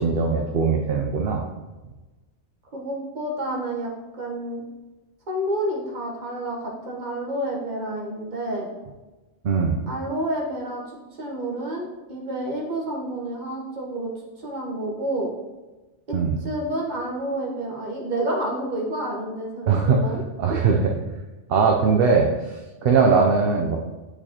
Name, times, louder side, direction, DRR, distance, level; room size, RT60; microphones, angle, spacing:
voice 1, 0.0-1.4 9.4-9.8 16.1-16.4 19.7-21.0 21.5-23.8, right 5 dB, 60° right, 1 dB, 0.7 m, -20 dB
voice 2, 2.7-4.6 5.3-8.7 9.9-14.1 14.4-15.3 16.1-20.2, right 1 dB, 40° right, -2 dB, 1.3 m, -29 dB
8.6 x 4.7 x 2.9 m, 1.2 s
omnidirectional pair, 1.3 m